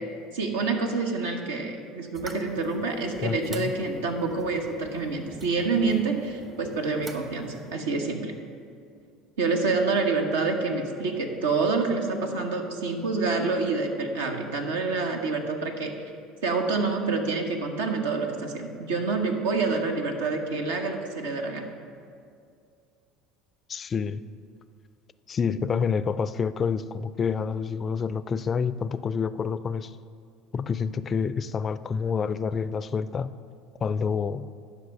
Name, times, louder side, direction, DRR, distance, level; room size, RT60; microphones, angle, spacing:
voice 1, 0.3-8.3 9.4-15.9 16.4-21.7, right 3 dB, 80° right, 3 dB, 1.0 m, -27 dB
sound 1, 2.1-7.8, right 3 dB, 30° right, 0.9 m, -45 dB
voice 2, 3.2-3.7 23.7-24.2 25.3-29.9 30.5-33.4 33.8-34.5, left 6 dB, 35° left, 15 dB, 0.3 m, -28 dB
10.5 x 6.0 x 5.4 m, 2.3 s
hypercardioid pair, 75°, 0 cm